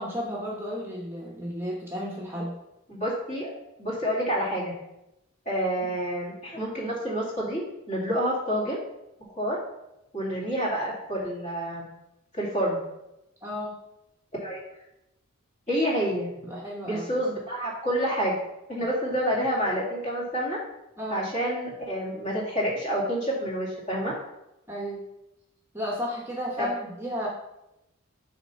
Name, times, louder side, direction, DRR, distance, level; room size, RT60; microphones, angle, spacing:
voice 1, 0.0-2.5 13.4-13.7 16.4-17.1 21.0-21.3 24.7-25.0 25.7-27.3, equal, 10° right, -3 dB, 1.0 m, -33 dB
voice 2, 2.9-3.5 3.8-4.7 5.5-7.6 7.9-8.8 9.4-9.6 10.1-11.8 12.3-12.8 14.4-14.6 15.7-16.3 16.8-18.3 18.7-20.6 21.1-24.1 26.6-26.7, equal, 35° left, -5 dB, 2.4 m, -28 dB
5.8 x 4.2 x 5.6 m, 0.89 s
head